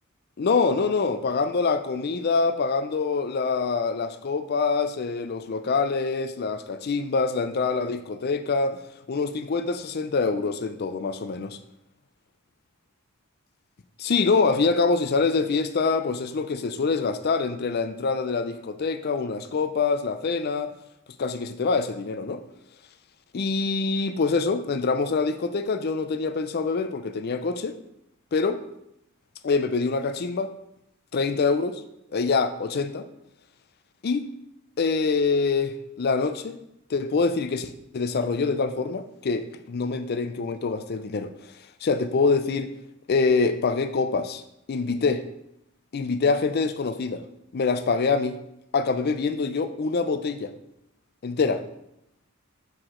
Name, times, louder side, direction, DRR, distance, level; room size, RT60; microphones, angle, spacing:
voice 1, 0.4-8.8 9.1-11.6 14.0-20.7 21.2-22.4 23.3-27.8 28.3-28.6 29.4-30.5 31.1-31.8 32.1-33.1 34.0-34.3 34.8-36.6 36.9-41.3 41.8-42.7 43.1-44.4 44.7-45.2 45.9-47.2 47.5-48.4 48.7-50.5 51.2-51.6, left 4 dB, 50° left, 0.4 m, -25 dB
6.0 x 4.8 x 3.7 m
head